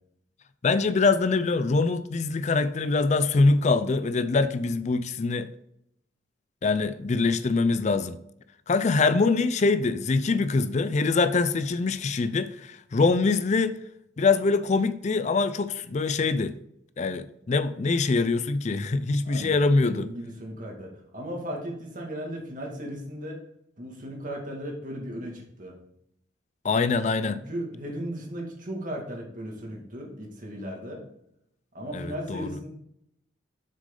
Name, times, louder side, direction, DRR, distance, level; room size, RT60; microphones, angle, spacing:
voice 1, 0.6-5.5 6.6-8.2 8.7-13.7 14.2-16.5 17.0-20.1 26.6-27.4 31.9-32.5, left 3 dB, 35° left, 0.4 m, -24 dB
voice 2, 19.2-23.4 23.8-25.8 27.3-31.1 31.7-32.7, equal, 45° right, 2.1 m, -36 dB
7.6 x 6.4 x 3.7 m
head